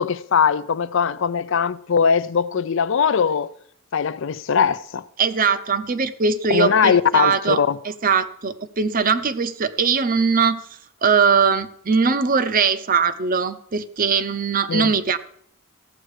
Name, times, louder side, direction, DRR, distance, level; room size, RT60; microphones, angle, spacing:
voice 1, 0.0-3.5 3.9-5.0 6.5-7.8 14.7-14.9, left 6 dB, 60° left, 0.4 m, -20 dB
voice 2, 5.2-7.6 7.8-10.7 11.0-15.2, right 5 dB, 40° right, 0.7 m, -20 dB
15.0 x 7.6 x 4.8 m
head